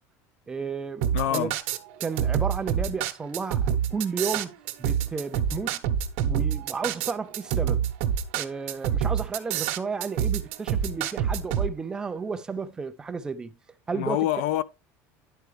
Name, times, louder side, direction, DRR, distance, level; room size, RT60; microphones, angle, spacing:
voice 1, 0.5-1.5 2.0-4.5 4.8-5.8 6.2-7.9 8.3-13.6 13.9-14.3, right 5 dB, 10° right, 0.3 m, -32 dB
sound 1, 1.0-11.7, right 9 dB, 80° right, 0.9 m, -26 dB
voice 2, 1.1-1.5 13.9-14.6, left 14 dB, 70° left, 0.3 m, -26 dB
11.0 x 4.6 x 3.2 m
cardioid pair, 180°, 7 cm